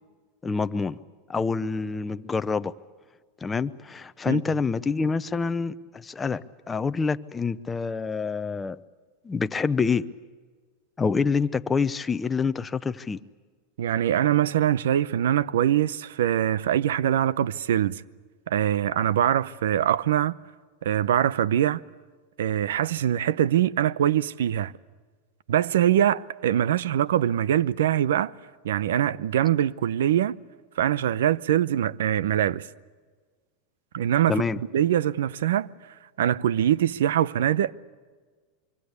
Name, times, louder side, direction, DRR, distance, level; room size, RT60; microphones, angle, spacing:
voice 1, 0.4-1.0 1.3-2.7 3.4-8.8 9.2-10.0 11.0-13.2 34.3-34.6, left 5 dB, 15° left, 0.7 m, -27 dB
voice 2, 13.8-18.0 18.5-20.4 20.8-21.8 22.4-24.7 25.5-28.3 28.6-30.4 30.8-32.7 33.9-34.4 34.7-35.7 36.2-37.7, right 11 dB, 90° right, 0.7 m, -23 dB
25.5 x 24.0 x 8.2 m
supercardioid pair, 140°, 0 cm